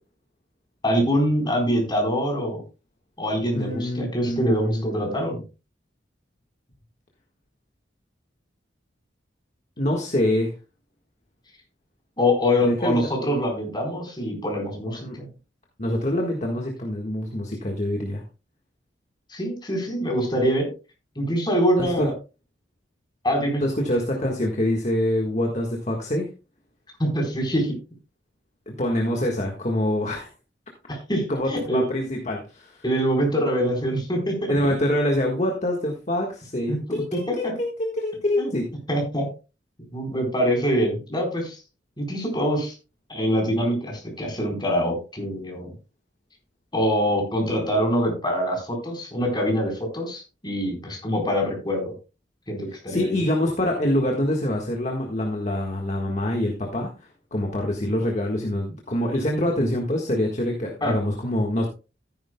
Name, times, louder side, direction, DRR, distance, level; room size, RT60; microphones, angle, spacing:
voice 1, 0.8-2.6 3.2-5.4 12.2-15.3 19.3-20.7 21.2-22.1 23.2-23.6 27.0-27.7 30.9-31.8 32.8-34.7 36.7-36.8 37.4-37.5 38.4-38.5 38.9-39.3 39.9-41.6 42.0-42.7 43.1-45.7 46.7-51.9 52.5-53.2 60.8-61.0, equal, 25° left, 0 dB, 4.1 m, -24 dB
voice 2, 3.5-5.2 9.8-10.5 12.6-13.1 15.0-15.2 15.8-18.2 21.8-22.1 23.6-26.3 28.7-30.3 31.3-32.8 34.5-38.7 52.9-56.9 57.3-61.7, left 1 dB, 40° left, 1 dB, 1.6 m, -25 dB
14.0 x 10.0 x 2.2 m, 0.31 s
head